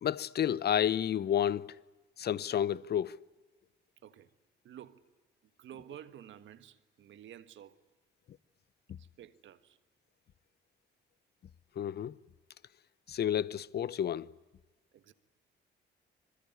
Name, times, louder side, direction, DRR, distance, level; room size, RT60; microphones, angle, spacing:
voice 1, 0.0-1.7 2.2-3.2 11.8-12.2 13.1-14.3, left 10 dB, 55° left, 0.8 m, -30 dB
voice 2, 4.0-4.3 4.6-5.0 5.6-7.8 9.0-9.8 14.9-15.1, right 10 dB, 70° right, 1.6 m, -51 dB
27.0 x 21.5 x 9.6 m
cardioid pair, 90°, 20 cm